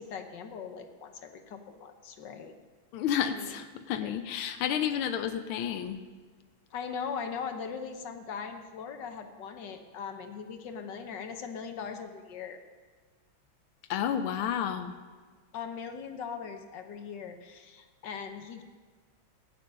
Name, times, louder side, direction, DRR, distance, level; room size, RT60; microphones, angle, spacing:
voice 1, 0.0-2.5 3.2-3.5 4.0-4.1 6.7-12.6 15.5-18.6, left 6 dB, 65° left, 6 dB, 1.5 m, -40 dB
voice 2, 2.9-6.0 13.9-14.9, left 9 dB, 85° left, 8 dB, 1.5 m, -31 dB
13.5 x 9.9 x 5.3 m, 1.5 s
omnidirectional pair, 2.2 m